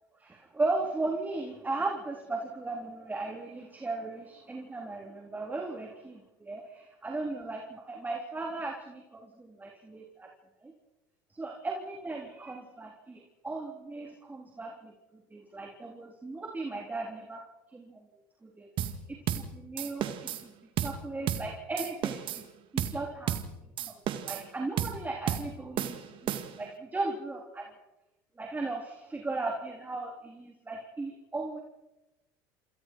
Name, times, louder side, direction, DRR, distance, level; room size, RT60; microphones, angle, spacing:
voice 1, 0.2-10.3 10.6-10.7 11.3-14.9 15.3-17.4 17.7-18.0 18.4-18.7 19.3-22.4 22.7-23.3 23.9-24.0 24.2-27.7 28.4-31.6, right 3 dB, 15° right, 0 dB, 3.9 m, -36 dB
sound 1, 18.8-19.0 19.3-19.5 19.8-20.4 20.8-21.0 21.3-21.5 21.8-22.4 22.8-23.0 23.3-23.5 23.8-24.5 24.8-25.0 25.3-25.5 25.8-26.7, right 10 dB, 50° right, 2.3 m, -32 dB
28.0 x 28.0 x 4.8 m, 1.0 s
hypercardioid pair, 85°, 11 cm